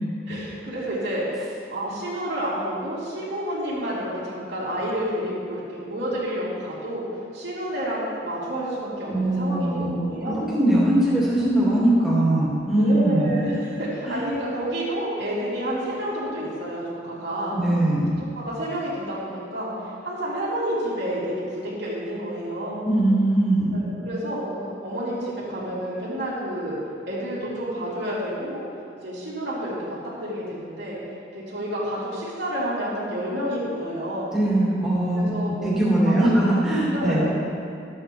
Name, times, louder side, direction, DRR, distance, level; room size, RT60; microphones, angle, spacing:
voice 1, 0.3-1.4 1.7-7.1 7.3-10.4 12.7-17.6 18.3-22.9 23.7-26.8 27.1-28.6 29.0-30.0 30.2-31.0 31.3-34.3 35.1-35.8 36.1-36.3 36.9-37.3, equal, 65° right, -8 dB, 2.8 m, -29 dB
voice 2, 9.1-9.9 10.3-13.4 14.0-14.2 17.5-18.2 22.8-23.8 34.3-35.3 35.6-37.3, right 1 dB, 5° right, -9 dB, 2.7 m, -21 dB
13.5 x 8.0 x 4.5 m, 2.4 s
head